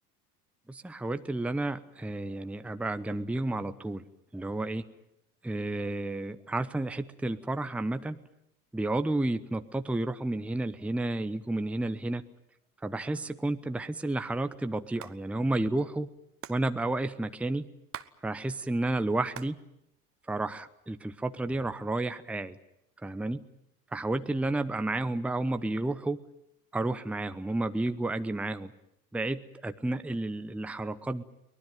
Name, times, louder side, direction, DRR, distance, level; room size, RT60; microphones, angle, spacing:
voice 1, 0.7-4.1 4.3-4.8 5.4-8.2 8.7-12.2 12.8-16.1 16.5-17.7 18.2-19.6 20.2-22.6 23.0-23.4 23.9-26.2 26.7-28.7 29.1-31.2, right 2 dB, 5° right, 10 dB, 0.9 m, -31 dB
Hands, 15.0-15.2 15.4-15.5 15.7-18.2 18.5-19.6 20.0-20.7 21.3-21.9, right 10 dB, 30° right, 1.1 m, -46 dB
23.5 x 19.0 x 9.3 m, 0.82 s
hypercardioid pair, 70°, 45 cm